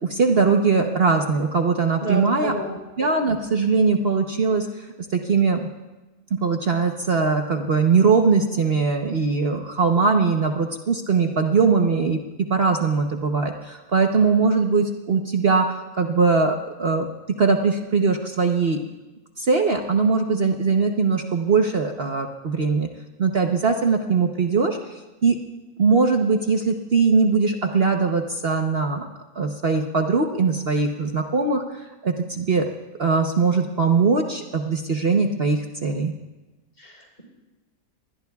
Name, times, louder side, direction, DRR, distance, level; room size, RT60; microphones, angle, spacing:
voice 1, 0.0-2.5 3.0-5.7 6.3-17.1 17.4-18.8 19.4-22.9 23.2-25.4 25.8-29.1 29.3-32.7 33.0-36.1, right 4 dB, 45° right, 3 dB, 1.0 m, -21 dB
voice 2, 2.0-2.8 36.8-37.2, right 1 dB, 35° left, 0 dB, 4.2 m, -30 dB
27.5 x 21.0 x 2.4 m, 1.1 s
omnidirectional pair, 1.6 m